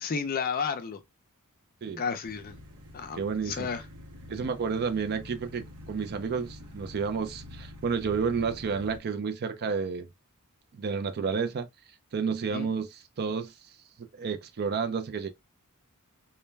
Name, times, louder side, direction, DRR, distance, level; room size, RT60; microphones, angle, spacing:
voice 1, 0.0-1.0 2.0-2.6 2.9-3.8 12.5-12.7, left 6 dB, 40° left, 0.4 m, -32 dB
sound 1, 2.2-9.0, left 1 dB, 80° right, 0.7 m, -47 dB
voice 2, 3.2-3.7 4.3-10.1 10.7-11.7 12.1-13.5 14.2-15.3, right 5 dB, 45° right, 0.4 m, -31 dB
2.2 x 2.1 x 3.2 m
head